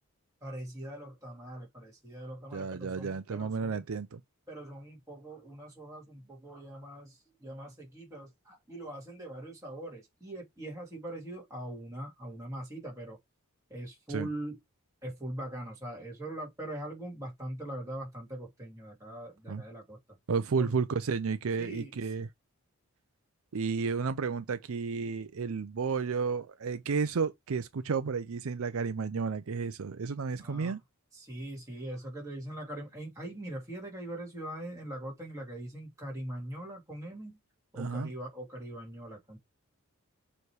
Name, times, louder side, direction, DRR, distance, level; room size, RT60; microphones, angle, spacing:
voice 1, 0.4-3.8 4.5-13.2 13.7-14.6 15.0-20.0 20.6-20.7 21.6-22.0 30.4-30.8 31.1-37.4 37.7-39.4, right 1 dB, 15° right, 2.4 m, -42 dB
voice 2, 2.5-4.2 14.1-14.3 19.5-19.6 20.3-22.3 23.5-30.8 37.8-38.1, right 5 dB, 65° right, 0.5 m, -32 dB
7.0 x 3.2 x 4.7 m
head